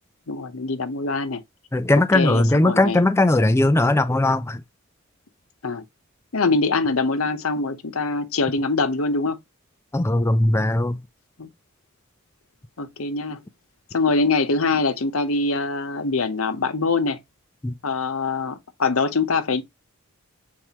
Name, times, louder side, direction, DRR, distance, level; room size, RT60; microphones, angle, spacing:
voice 1, 0.3-1.4 2.1-3.0 5.6-5.8 6.3-9.4 11.4-11.5 12.8-13.4 13.9-17.2 17.8-19.6, left 3 dB, 75° left, 0.9 m, -23 dB
voice 2, 1.7-4.6 9.9-11.0 17.6-17.7, left 2 dB, 10° left, 0.4 m, -19 dB
7.3 x 4.7 x 2.9 m
head